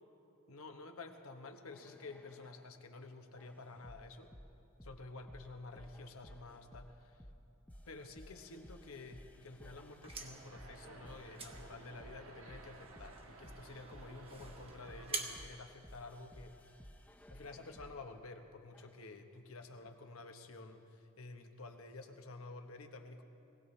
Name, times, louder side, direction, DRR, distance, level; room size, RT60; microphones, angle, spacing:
voice 1, 0.5-4.3 4.8-6.9 7.9-16.6 17.3-23.2, left 3 dB, 90° left, 5 dB, 1.1 m, -51 dB
sound 1, 1.7-2.7 3.4-18.1 18.7-19.1, equal, 5° left, 0.5 m, -57 dB
sound 2, 9.8-16.6, right 4 dB, 25° right, 1.0 m, -48 dB
sound 3, 10.2-15.4, right 2 dB, 80° right, 1.3 m, -55 dB
20.5 x 17.0 x 3.3 m, 2.6 s
head